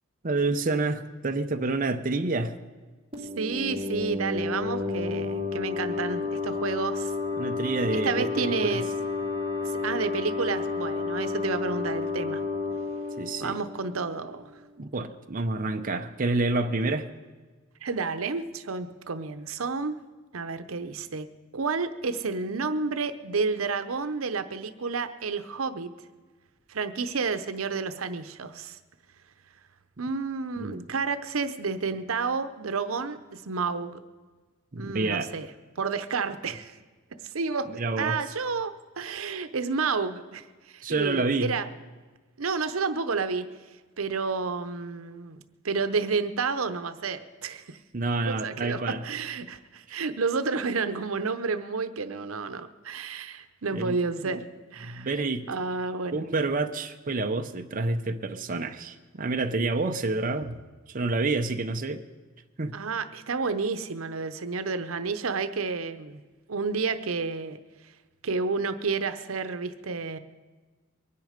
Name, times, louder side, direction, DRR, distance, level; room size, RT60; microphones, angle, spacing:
voice 1, 0.2-2.6 7.4-8.8 13.2-13.6 14.8-17.1 30.6-30.8 34.7-35.3 37.7-38.2 40.8-41.6 47.9-49.0 49.9-50.0 53.7-54.0 54.2-54.4 54.8-55.5 56.1-60.6 60.9-62.0 62.6-62.8, right 3 dB, 40° right, 6 dB, 0.7 m, -28 dB
sound 1, 3.1-14.5, left 4 dB, 25° right, 2.7 m, -31 dB
voice 2, 3.4-7.1 7.9-8.8 9.6-12.4 13.4-14.5 17.8-20.0 20.3-21.3 21.5-25.9 26.7-28.8 30.0-34.0 34.8-35.5 35.8-36.8 37.2-40.5 40.7-41.7 42.4-43.5 44.0-45.4 45.6-47.8 48.3-54.5 54.7-55.1 55.5-56.2 62.7-66.2 66.5-67.6 68.2-70.2, right 4 dB, 90° right, 11 dB, 0.8 m, -30 dB
23.0 x 9.7 x 5.1 m, 1.3 s
head